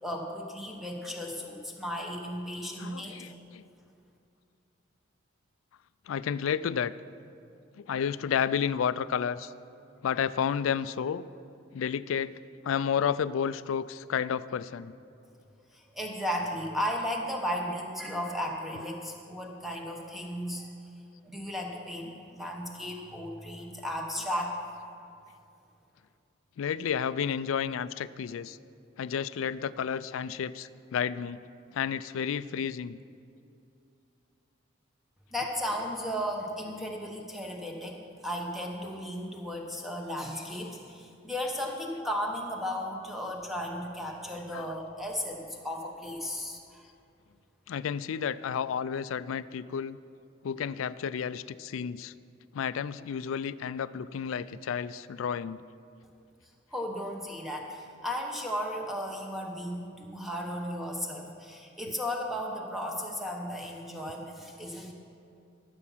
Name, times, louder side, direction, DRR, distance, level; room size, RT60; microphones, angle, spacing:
voice 1, 0.0-3.4 15.7-20.7 21.2-24.5 35.3-46.9 56.7-64.9, equal, ahead, 0 dB, 1.1 m, -35 dB
voice 2, 2.8-3.6 6.1-6.9 7.8-9.5 10.0-11.3 11.7-14.9 26.6-28.6 29.0-31.4 31.7-33.0 44.5-44.7 47.7-50.0 50.4-52.1 52.5-55.6, left 7 dB, 85° left, 16 dB, 0.3 m, -31 dB
14.5 x 7.2 x 5.7 m, 2.6 s
head